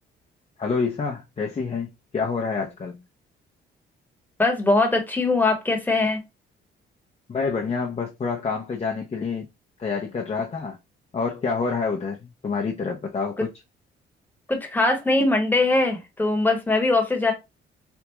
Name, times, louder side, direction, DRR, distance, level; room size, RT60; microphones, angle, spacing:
voice 1, 0.6-3.0 7.3-9.5 9.8-10.8 11.1-13.5, left 4 dB, 30° left, 0.7 m, -27 dB
voice 2, 4.4-6.2 14.5-17.3, left 2 dB, 10° left, 1.2 m, -21 dB
3.5 x 2.3 x 3.0 m
cardioid pair, 90°, 20 cm